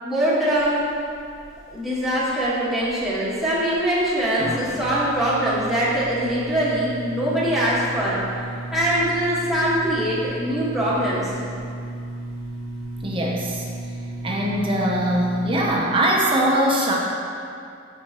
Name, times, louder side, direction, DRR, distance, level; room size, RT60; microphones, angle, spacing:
voice 1, 0.0-0.8 1.7-8.2 8.7-11.3, right 1 dB, ahead, -10 dB, 1.5 m, -22 dB
sound 1, 0.6-15.8, right 1 dB, 20° left, 1.2 m, -35 dB
voice 2, 13.0-13.7 14.2-17.0, right 1 dB, 25° right, -2 dB, 0.7 m, -21 dB
7.5 x 5.7 x 3.0 m, 2.4 s
head